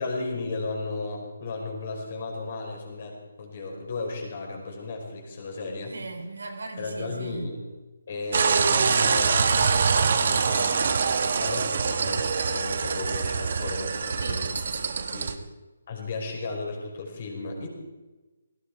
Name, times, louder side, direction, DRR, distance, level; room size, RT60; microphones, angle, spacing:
voice 1, 0.0-5.9 6.8-7.6 8.1-14.5 15.1-15.3 15.9-17.7, left 3 dB, 45° left, 1 dB, 5.1 m, -34 dB
voice 2, 5.9-7.5 14.2-15.3, right 3 dB, 80° right, 2 dB, 4.2 m, -38 dB
sound 1, 8.3-15.3, right 5 dB, 55° right, 1.2 m, -24 dB
17.5 x 16.0 x 4.9 m, 1.2 s
hypercardioid pair, 160°, 0 cm